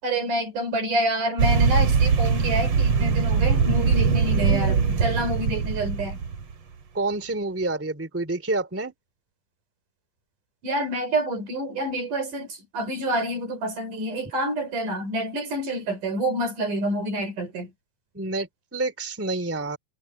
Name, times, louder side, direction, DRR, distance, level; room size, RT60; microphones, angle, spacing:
voice 1, 0.0-6.2 10.6-12.5 12.7-17.7, right 1 dB, 70° right, 6.7 m, -27 dB
sound 1, 1.4-6.5, right 5 dB, 45° right, 3.0 m, -21 dB
voice 2, 6.9-8.9 18.1-19.8, right 2 dB, 5° right, 2.5 m, -28 dB
omnidirectional pair, 3.9 m